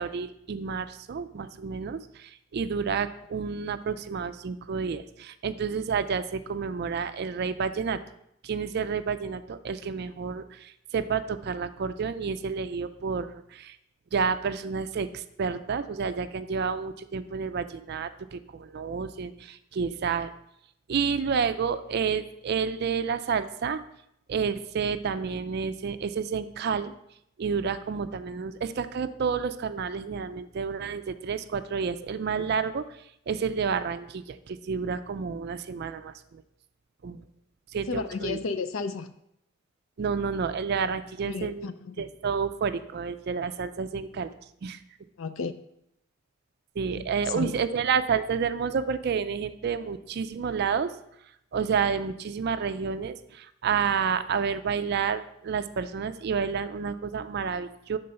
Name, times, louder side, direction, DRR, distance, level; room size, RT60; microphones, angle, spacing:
voice 1, 0.0-8.0 8.4-13.8 14.1-20.3 20.9-23.8 24.3-26.9 27.4-32.8 33.3-36.4 37.0-37.2 37.7-38.4 40.0-41.7 42.0-44.3 44.6-44.8 46.8-50.9 51.5-58.0, right 6 dB, 55° right, 11 dB, 0.4 m, -30 dB
voice 2, 37.9-39.1 41.2-42.0 45.2-45.5 46.9-47.5, left 4 dB, 80° left, 11 dB, 0.5 m, -33 dB
6.8 x 3.8 x 5.3 m, 0.77 s
head